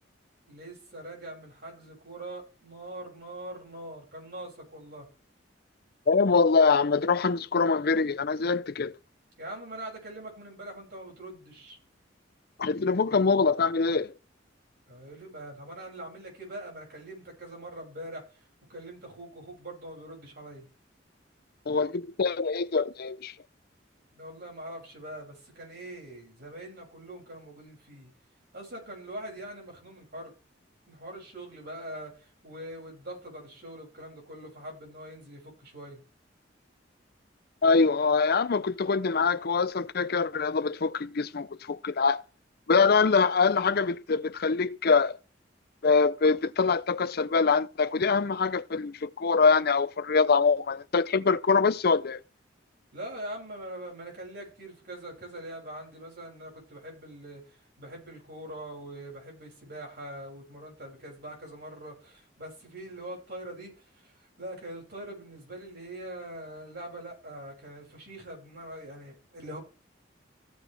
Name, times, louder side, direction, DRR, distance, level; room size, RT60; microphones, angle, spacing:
voice 1, 0.5-5.1 9.4-11.8 14.9-18.2 18.7-20.6 24.1-28.1 28.5-30.3 30.9-32.1 32.4-36.0 52.9-57.4 57.8-63.7 64.0-64.1 64.4-69.6, right 1 dB, 60° right, 6.6 m, -43 dB
voice 2, 6.1-8.9 12.6-14.1 21.7-23.3 37.6-42.2 42.7-45.2 45.8-52.2, left 4 dB, 55° left, 0.6 m, -24 dB
15.5 x 8.3 x 3.4 m
head